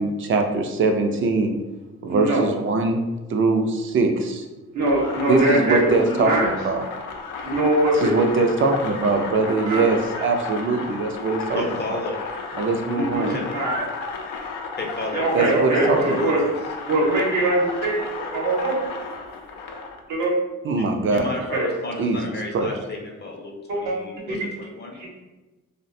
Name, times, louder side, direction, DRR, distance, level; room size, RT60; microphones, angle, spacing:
voice 1, 0.0-1.5 2.0-3.0 3.3-4.5 5.3-6.8 8.0-11.6 11.9-12.0 12.6-13.4 15.3-16.3 20.6-21.3 22.0-22.2 22.5-22.7, right 3 dB, 45° right, 5 dB, 0.4 m, -22 dB
voice 2, 2.1-2.4 4.7-6.5 7.4-8.2 9.7-9.9 12.9-13.3 13.5-13.8 15.1-16.5 16.9-18.8 20.1-20.3 21.5-21.6 23.7-24.0 24.3-24.4 25.0-25.1, right 1 dB, 85° right, -2 dB, 0.8 m, -22 dB
sound 1, 4.8-20.0, left 4 dB, 85° left, 0.5 m, -34 dB
voice 3, 11.5-12.7 13.3-13.5 14.8-16.3 20.8-25.0, left 2 dB, 35° left, 0 dB, 0.6 m, -32 dB
2.4 x 2.1 x 2.6 m, 1.1 s
cardioid pair, 90°, 30 cm